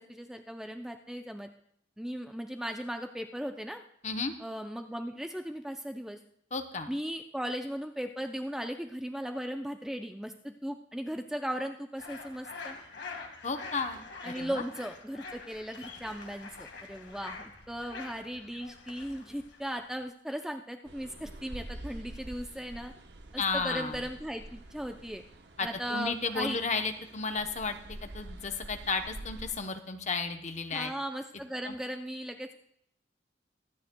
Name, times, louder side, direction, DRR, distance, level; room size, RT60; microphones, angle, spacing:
voice 1, 0.0-1.5 2.0-3.8 4.4-6.2 6.9-12.8 14.2-22.9 23.3-25.2 25.6-26.6 30.7-32.5, equal, 5° right, 5 dB, 0.4 m, -37 dB
voice 2, 6.5-6.9 13.4-14.6 23.4-24.0 25.6-30.9 31.6-31.8, left 4 dB, 35° left, 7 dB, 0.8 m, -33 dB
sound 1, 12.0-20.0, left 4 dB, 65° left, 1.7 m, -46 dB
sound 2, 20.9-29.5, right 1 dB, 60° right, 0.9 m, -47 dB
23.0 x 9.5 x 2.2 m, 0.70 s
head